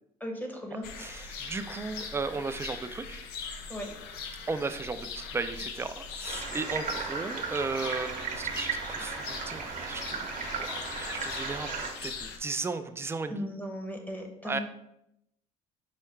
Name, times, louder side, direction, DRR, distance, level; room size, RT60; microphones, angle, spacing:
voice 1, 0.2-0.8 3.7-3.9 13.3-14.6, equal, 10° left, 3 dB, 0.9 m, -37 dB
sound 1, 0.8-12.4, left 5 dB, 80° left, 0.6 m, -41 dB
voice 2, 1.0-3.2 4.5-10.2 10.6-13.5 14.4-14.6, right 3 dB, 15° right, 9 dB, 0.4 m, -35 dB
sound 2, 6.2-11.9, right 6 dB, 50° right, 0.8 m, -36 dB
4.7 x 2.1 x 4.4 m, 0.80 s
supercardioid pair, 80°, 16 cm